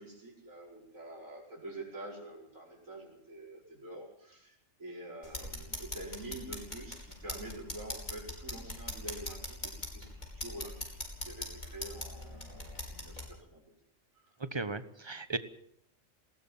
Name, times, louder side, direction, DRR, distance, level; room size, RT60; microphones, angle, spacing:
voice 1, 0.0-10.9 11.2-13.6 14.1-14.2, right 1 dB, 90° right, -2 dB, 5.5 m, -47 dB
sound 1, 5.2-13.3, left 1 dB, 35° left, 5.1 m, -42 dB
voice 2, 14.5-15.4, right 3 dB, 20° right, 12 dB, 1.2 m, -36 dB
20.0 x 18.5 x 7.3 m, 0.69 s
omnidirectional pair, 1.4 m